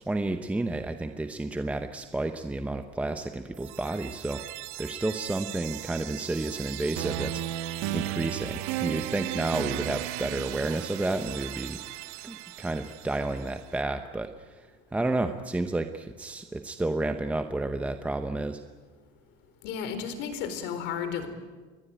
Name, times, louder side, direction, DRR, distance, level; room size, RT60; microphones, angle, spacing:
voice 1, 0.0-4.4 4.8-7.4 7.9-11.8 12.2-14.6 14.9-18.6, right 2 dB, 5° right, 7 dB, 0.8 m, -31 dB
sound 1, 3.5-13.5, right 15 dB, 85° right, 1.3 m, -36 dB
voice 2, 19.6-21.3, left 7 dB, 60° left, 10 dB, 4.2 m, -33 dB
28.0 x 21.5 x 8.9 m, 1.4 s
cardioid pair, 165°, 21 cm